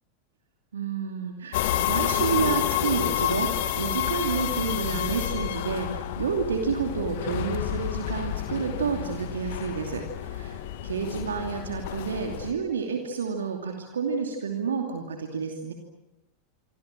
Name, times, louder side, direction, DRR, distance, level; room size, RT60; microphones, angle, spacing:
voice 1, 0.7-15.7, right 6 dB, 70° right, 3 dB, 2.7 m, -30 dB
sound 1, 1.5-12.5, left 12 dB, 55° left, 1.9 m, -29 dB
26.5 x 26.5 x 7.6 m, 0.98 s
figure-of-eight pair, 85°, 0 cm